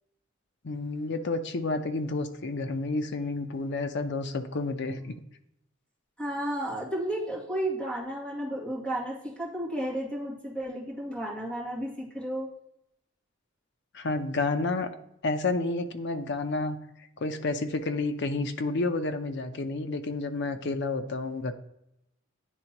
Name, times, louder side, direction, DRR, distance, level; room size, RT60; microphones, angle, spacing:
voice 1, 0.6-5.2 13.9-14.9 15.2-16.8 17.2-21.5, left 3 dB, 60° left, 8 dB, 0.6 m, -30 dB
voice 2, 6.2-12.5, right 1 dB, 5° left, -5 dB, 2.0 m, -33 dB
10.0 x 3.6 x 2.9 m, 0.80 s
head